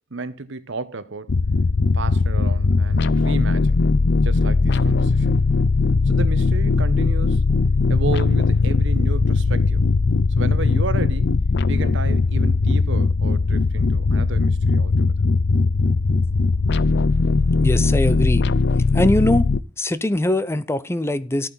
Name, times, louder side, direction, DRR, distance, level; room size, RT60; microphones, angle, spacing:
voice 1, 0.1-1.4 1.9-3.8 4.2-5.3 6.1-7.4 7.9-9.8 10.4-11.4 11.7-14.9, right 3 dB, 65° right, 1.1 m, -32 dB
sound 1, 1.3-19.6, left 3 dB, 60° left, 0.6 m, -19 dB
voice 2, 17.6-18.4 18.9-19.5 19.8-21.5, left 1 dB, 15° left, 0.6 m, -21 dB
13.5 x 9.2 x 4.0 m
head